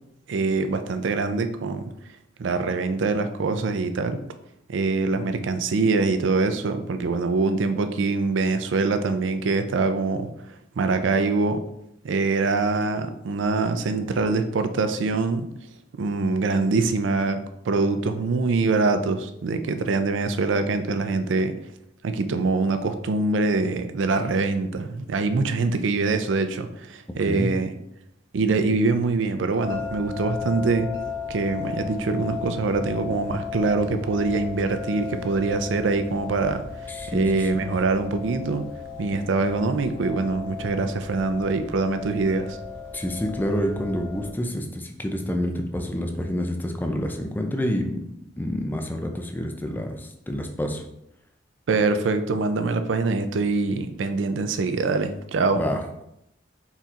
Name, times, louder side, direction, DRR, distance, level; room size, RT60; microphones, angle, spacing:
voice 1, 0.3-1.9 2.4-4.2 4.7-10.3 10.8-11.6 12.0-15.5 15.9-21.5 22.0-27.7 28.3-30.9 31.3-36.6 37.1-38.7 39.0-42.6 51.7-55.6, right 3 dB, 80° right, 8 dB, 0.4 m, -24 dB
sound 1, 29.6-44.3, left 6 dB, 65° right, 1.6 m, -36 dB
voice 2, 36.9-37.7 42.9-48.0 48.4-50.8 55.6-56.0, equal, 10° left, 4 dB, 0.4 m, -28 dB
4.2 x 4.0 x 2.4 m, 0.78 s
head